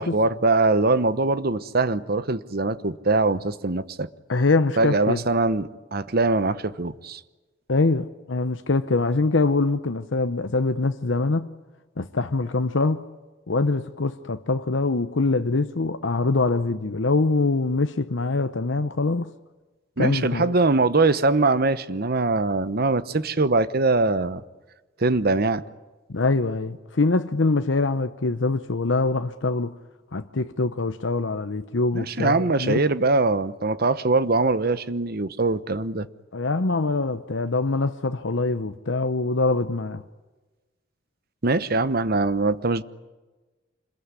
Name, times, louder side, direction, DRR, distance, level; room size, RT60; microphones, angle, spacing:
voice 1, 0.0-4.1 4.8-7.2 20.0-24.4 25.0-25.6 31.9-36.1 41.4-42.8, right 3 dB, 55° right, 1.0 m, -22 dB
voice 2, 4.3-5.2 7.7-11.5 12.0-13.0 13.5-19.3 20.0-20.5 26.1-29.8 30.1-32.8 36.3-40.0, left 3 dB, 85° left, 0.9 m, -24 dB
26.5 x 21.5 x 9.8 m
head